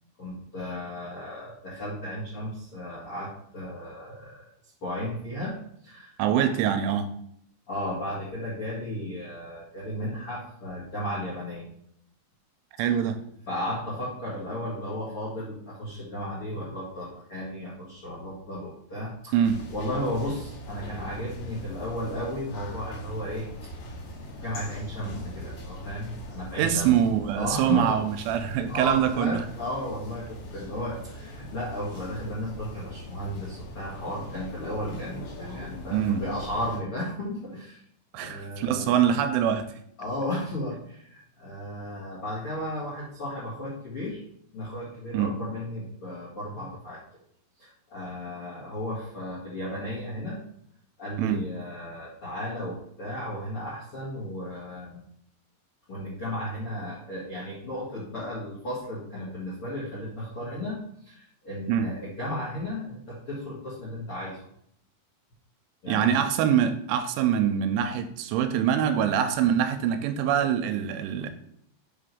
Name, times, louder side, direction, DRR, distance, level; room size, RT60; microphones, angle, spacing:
voice 1, 0.2-4.5 4.8-5.6 5.8-6.5 7.7-11.6 12.8-13.0 13.5-19.4 19.7-23.7 24.3-26.9 27.4-28.0 28.7-37.8 38.1-39.0 40.0-44.2 44.5-47.0 47.6-50.4 51.0-55.0 55.9-64.4 65.8-66.1, left 1 dB, 60° left, -7 dB, 1.4 m, -34 dB
voice 2, 6.2-7.1 12.8-13.2 19.3-19.6 26.6-29.4 35.9-36.2 38.1-39.7 45.1-45.4 51.2-51.4 61.7-61.9 65.9-71.3, right 9 dB, 85° right, 8 dB, 2.9 m, -24 dB
sound 1, 19.4-36.8, equal, 85° left, 4.8 m, -41 dB
8.5 x 3.3 x 5.4 m, 0.69 s
omnidirectional pair, 5.7 m